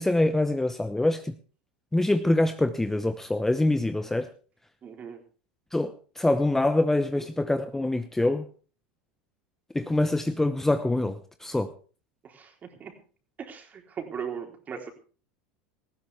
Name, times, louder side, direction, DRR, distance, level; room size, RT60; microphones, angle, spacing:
voice 1, 0.0-1.3 1.9-4.3 5.7-8.5 9.7-11.7, left 2 dB, 10° left, 10 dB, 0.9 m, -25 dB
voice 2, 4.8-5.2 12.3-12.9 13.4-14.9, right 7 dB, 35° right, 4 dB, 3.9 m, -38 dB
18.5 x 15.0 x 3.5 m, 0.38 s
hypercardioid pair, 90°, 5 cm